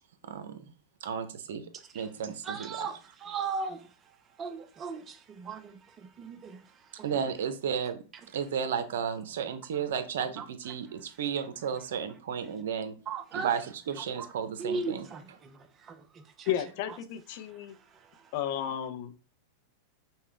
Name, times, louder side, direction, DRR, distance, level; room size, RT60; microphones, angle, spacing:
voice 1, 0.2-0.7 1.0-1.7 1.9-2.9 7.0-8.0 8.3-12.9 13.3-15.1, right 7 dB, 80° right, 0.7 m, -33 dB
voice 2, 1.9-3.9 4.4-7.3 10.4-10.5 13.1-13.5 14.1-14.3 14.6-16.5 16.9-17.0 17.4-18.3, right 5 dB, 30° right, 0.7 m, -39 dB
voice 3, 16.5-17.7 18.3-19.2, left 10 dB, 60° left, 0.7 m, -33 dB
5.5 x 2.2 x 3.3 m
hypercardioid pair, 125°, 0 cm